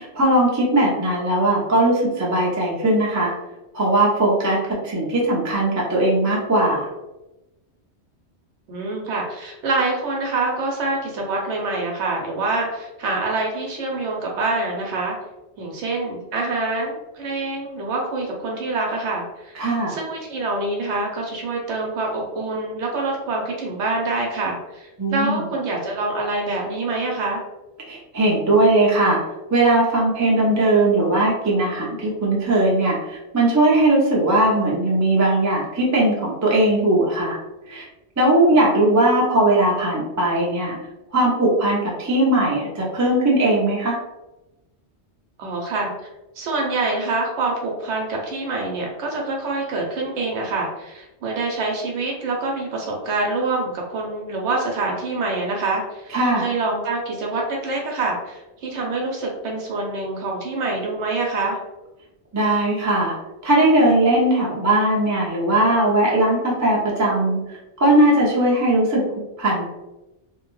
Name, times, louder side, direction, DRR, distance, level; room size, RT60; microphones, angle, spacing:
voice 1, 0.0-3.3 3.7-6.9 19.5-20.0 25.0-25.4 27.9-29.2 29.5-37.4 37.7-37.9 38.2-40.8 41.1-44.0 56.1-56.5 62.3-63.2 63.4-67.4 67.8-69.0 69.4-69.7, right 1 dB, 25° right, -4 dB, 0.4 m, -19 dB
voice 2, 8.7-15.1 15.6-19.6 19.9-27.4 45.4-45.9 46.3-61.6, right 3 dB, 90° right, -1 dB, 0.9 m, -26 dB
2.7 x 2.1 x 3.0 m, 1.0 s
omnidirectional pair, 1.2 m